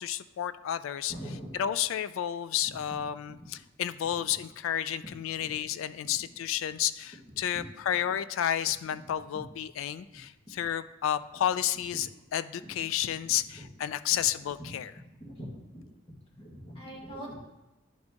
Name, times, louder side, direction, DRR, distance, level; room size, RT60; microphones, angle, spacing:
voice 1, 0.0-1.1 1.5-14.9, left 10 dB, 75° left, 14 dB, 0.3 m, -31 dB
voice 2, 1.1-1.6 5.4-5.5 7.5-7.6 13.5-13.6 14.1-14.2 14.6-14.7 15.2-15.9 16.4-17.4, equal, 25° left, -4 dB, 1.7 m, -42 dB
10.5 x 4.4 x 2.9 m, 0.98 s
head